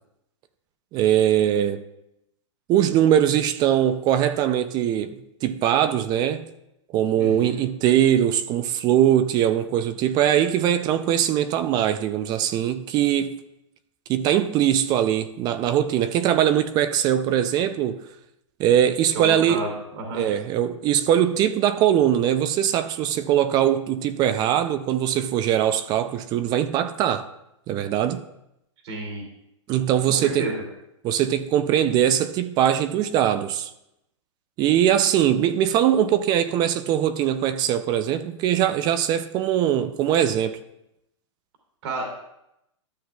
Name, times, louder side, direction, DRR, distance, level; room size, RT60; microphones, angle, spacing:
voice 1, 0.9-1.8 2.7-6.5 6.9-13.4 14.1-18.1 18.6-19.7 20.1-27.3 27.7-28.2 29.7-30.5 31.0-33.7 34.6-40.6, right 10 dB, 25° right, 0.4 m, -21 dB
voice 2, 7.2-7.6 19.1-20.2 28.8-29.2 30.1-30.5 41.8-42.1, right 2 dB, 65° right, 2.5 m, -31 dB
13.0 x 7.5 x 2.3 m
hypercardioid pair, 135°, 16 cm